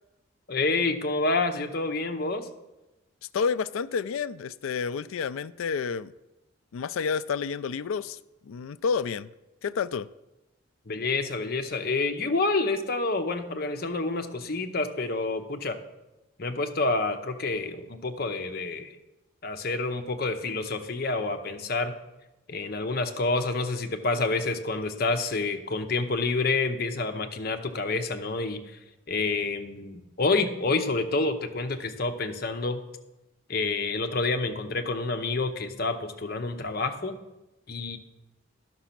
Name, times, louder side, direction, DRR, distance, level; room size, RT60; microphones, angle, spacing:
voice 1, 0.5-2.5 10.9-15.8 16.4-19.0 19.4-21.9 22.5-28.8 29.1-32.8 33.5-37.2 37.7-38.0, left 3 dB, 50° left, 0.8 m, -28 dB
voice 2, 3.3-6.1 6.7-8.2 8.5-9.3 9.6-10.1, left 6 dB, 85° left, 0.4 m, -29 dB
11.0 x 6.1 x 5.9 m
head